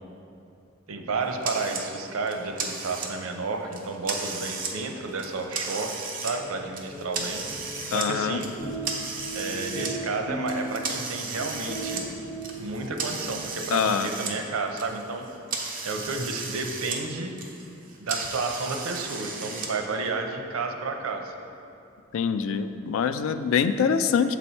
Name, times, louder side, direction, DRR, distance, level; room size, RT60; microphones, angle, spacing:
voice 1, 0.9-7.4 7.9-8.5 9.3-12.1 12.6-15.3 15.8-17.3 18.0-21.3, right 3 dB, 90° right, 4 dB, 0.6 m, -31 dB
sound 1, 1.4-1.8 2.3-3.3 3.7-4.7 5.1-6.3 6.7-8.1 8.4-9.9 10.5-14.3 14.6-17.0 17.3-19.7, right 4 dB, 40° right, 0.7 m, -34 dB
sound 2, 6.3-13.8, right 1 dB, 55° left, 1.1 m, -38 dB
voice 2, 7.9-8.4 13.7-14.1 22.1-24.4, left 6 dB, 75° left, 11 dB, 0.3 m, -24 dB
7.1 x 4.2 x 4.3 m, 2.6 s
head